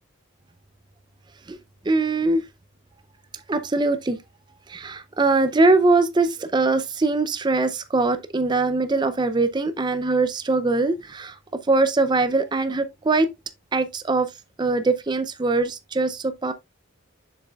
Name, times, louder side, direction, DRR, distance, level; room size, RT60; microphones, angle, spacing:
voice 1, 1.9-2.4 3.5-4.2 4.7-11.4 11.7-13.3 13.7-14.3 14.6-16.5, right 3 dB, 20° right, 0.4 m, -22 dB
7.2 x 6.6 x 2.3 m
head